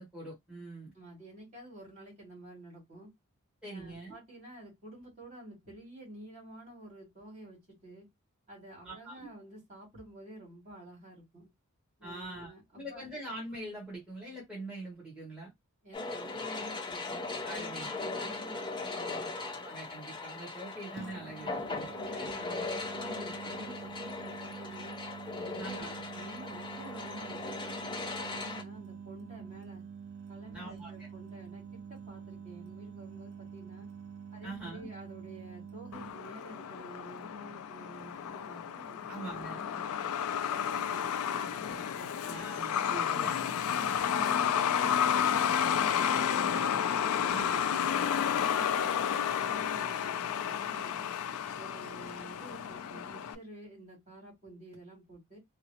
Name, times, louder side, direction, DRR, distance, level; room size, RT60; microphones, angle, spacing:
voice 1, 0.0-0.9 3.6-4.2 8.8-9.3 12.0-15.5 17.4-18.0 19.3-21.9 22.1-22.6 25.6-26.0 30.5-31.1 34.4-34.9 39.1-39.6 42.2-43.3 47.3-47.8, right 1 dB, 5° right, 1.5 m, -43 dB
voice 2, 0.9-3.1 3.6-8.1 8.5-11.5 12.0-13.1 15.8-19.3 21.4-25.0 25.4-29.8 30.3-33.9 34.3-39.8 40.3-42.3 43.0-43.4 43.8-46.7 47.1-51.1 51.5-55.4, right 1 dB, 35° right, 2.4 m, -50 dB
sound 1, 15.9-28.6, left 3 dB, 20° left, 0.6 m, -39 dB
sound 2, 18.1-18.3 21.0-36.1, right 6 dB, 50° right, 0.4 m, -47 dB
Truck, 35.9-53.3, left 8 dB, 70° left, 0.4 m, -31 dB
3.8 x 2.0 x 2.8 m
head